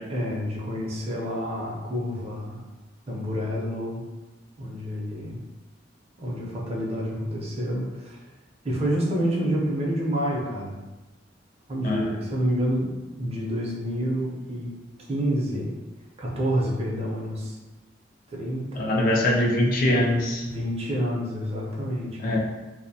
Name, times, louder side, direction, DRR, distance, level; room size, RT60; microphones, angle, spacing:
voice 1, 0.1-2.6 3.1-4.0 4.6-5.4 6.2-8.2 8.6-10.8 11.7-14.7 15.1-15.7 16.2-17.6 18.3-19.1 20.4-22.4, equal, 35° right, -3 dB, 0.5 m, -28 dB
voice 2, 18.8-20.4 22.2-22.4, left 1 dB, 50° left, -2 dB, 0.4 m, -23 dB
2.5 x 2.0 x 2.7 m, 1.1 s
head